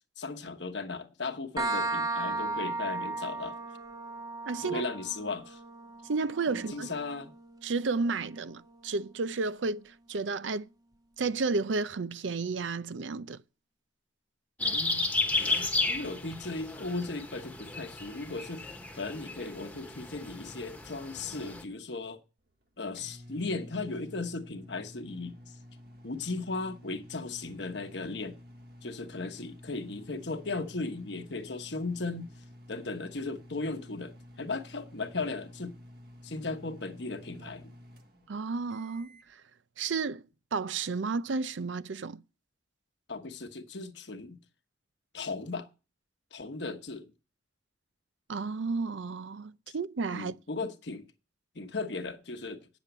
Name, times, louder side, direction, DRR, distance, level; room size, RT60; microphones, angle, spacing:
voice 1, 0.2-3.6 4.6-5.6 6.5-7.3 14.7-15.0 15.4-22.2 22.8-25.5 26.0-28.4 28.8-32.3 32.7-35.8 36.2-37.7 43.1-44.4 45.1-45.7 46.3-47.1 49.7-49.8 50.1-51.1 51.5-52.7, left 3 dB, 65° left, 1.1 m, -37 dB
sound 1, 1.6-9.0, right 3 dB, 20° right, 0.7 m, -36 dB
voice 2, 4.5-4.8 6.1-6.9 7.6-10.7 11.2-13.4 38.3-39.2 39.8-40.2 40.5-42.2 48.3-50.4, right 4 dB, 80° right, 0.6 m, -32 dB
sound 2, 14.6-21.6, left 3 dB, 10° left, 1.1 m, -33 dB
sound 3, 22.4-39.3, left 1 dB, 55° right, 1.4 m, -51 dB
9.1 x 7.1 x 8.0 m
head